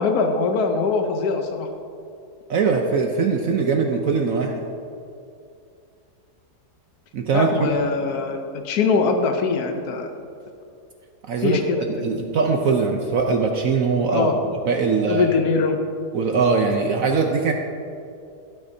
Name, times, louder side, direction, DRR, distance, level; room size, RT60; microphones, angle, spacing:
voice 1, 0.0-1.7 7.3-8.4 8.6-10.1 11.4-12.2 14.1-14.4 15.1-15.8, left 4 dB, 75° left, 4 dB, 1.3 m, -22 dB
voice 2, 2.5-4.5 7.1-7.7 11.3-14.3 14.7-15.3 16.1-17.5, right 4 dB, 65° right, 3 dB, 1.1 m, -21 dB
16.0 x 9.4 x 2.7 m, 2.5 s
omnidirectional pair, 1.7 m